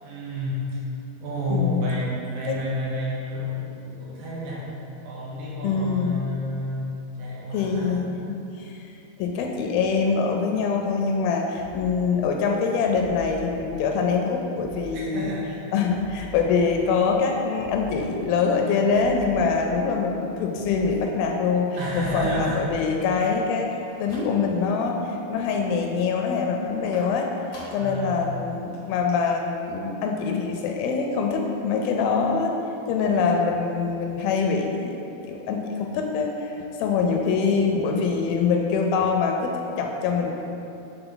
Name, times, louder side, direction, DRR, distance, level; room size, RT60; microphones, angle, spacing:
voice 1, 0.0-0.6 1.2-4.6 5.0-6.9 7.2-8.2 15.1-15.7 21.8-22.5 27.8-28.2, left 1 dB, 75° right, -7 dB, 2.7 m, -30 dB
voice 2, 1.5-1.9 2.5-2.6 5.6-6.2 7.5-8.9 9.2-15.3 15.7-21.7 21.9-23.7 24.0-27.3 27.7-32.6 32.9-35.0 35.3-40.4, left 5 dB, 85° left, 2 dB, 2.3 m, -24 dB
sound 1, 11.6-11.9 12.9-13.7 14.6-14.9 15.9-16.8 17.6-17.9 18.9-19.8 20.6-20.9 21.9-22.8, equal, 60° right, 2.3 m, -43 dB
sound 2, 23.7-24.8 25.1-25.6 26.9-28.0 28.4-28.5 28.7-28.8 29.1-29.2, left 1 dB, 70° left, 1.3 m, -46 dB
6.9 x 4.0 x 3.8 m, 2.9 s
omnidirectional pair, 4.3 m